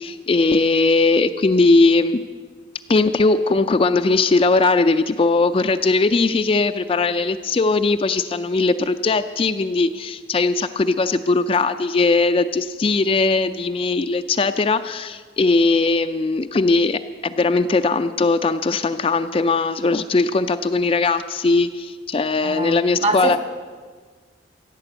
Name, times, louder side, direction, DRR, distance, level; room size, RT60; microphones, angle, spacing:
voice 1, 0.0-2.2 2.9-23.4, left 3 dB, 30° left, 8 dB, 0.3 m, -19 dB
voice 2, 22.4-23.4, right 2 dB, 35° right, 7 dB, 1.2 m, -24 dB
15.0 x 9.1 x 7.8 m, 1.5 s
head